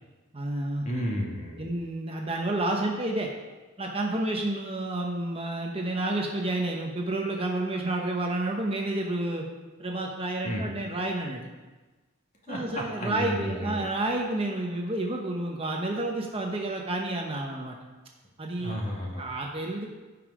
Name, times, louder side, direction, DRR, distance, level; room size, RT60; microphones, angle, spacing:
voice 1, 0.3-0.9 1.6-3.3 3.8-9.4 9.8-11.5 12.5-17.8 18.4-18.8 19.2-19.9, right 2 dB, 25° right, 1 dB, 0.9 m, -30 dB
voice 2, 0.8-1.6 10.4-10.7 12.5-13.8 18.6-19.2, equal, 35° left, -2 dB, 2.3 m, -32 dB
15.5 x 5.5 x 4.9 m, 1.2 s
head